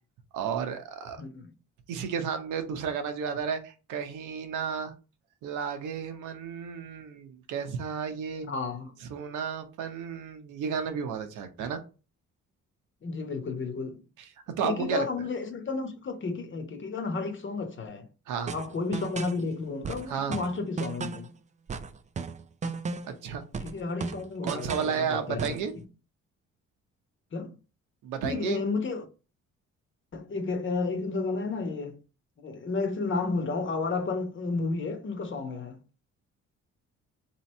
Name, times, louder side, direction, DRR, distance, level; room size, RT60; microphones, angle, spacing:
voice 1, 0.3-1.2 1.9-4.9 5.4-8.5 9.1-11.8 14.2-15.1 18.3-18.5 20.1-20.4 23.1-23.4 24.4-25.7 28.0-28.6, right 7 dB, 85° right, 0.8 m, -32 dB
voice 2, 1.2-1.5 8.4-8.9 13.0-14.0 14.6-18.1 18.5-21.3 23.6-25.6 27.3-27.5 28.2-29.1 30.1-32.0 32.4-35.8, left 4 dB, 40° left, 1.0 m, -32 dB
sound 1, 18.5-19.4 19.8-21.3 21.7-23.2 23.5-25.0 25.4-25.7, right 5 dB, 25° right, 0.4 m, -35 dB
3.0 x 2.9 x 4.1 m
cardioid pair, 90°, 30 cm